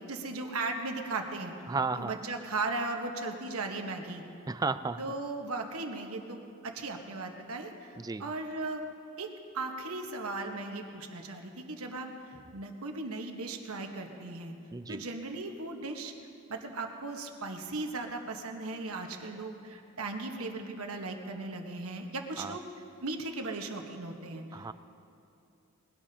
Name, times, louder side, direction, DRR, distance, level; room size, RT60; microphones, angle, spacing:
voice 1, 0.0-1.5 2.0-4.2 5.0-8.8 9.2-9.3 9.5-12.1 12.5-14.5 14.9-16.1 16.5-22.6 23.0-24.4, right 3 dB, 85° right, 3 dB, 1.3 m, -37 dB
voice 2, 1.7-2.2 4.5-5.0 8.0-8.3 14.7-15.0 22.4-22.6 24.5-24.7, right 4 dB, 15° right, 12 dB, 0.3 m, -33 dB
21.5 x 17.0 x 2.8 m, 2.7 s
head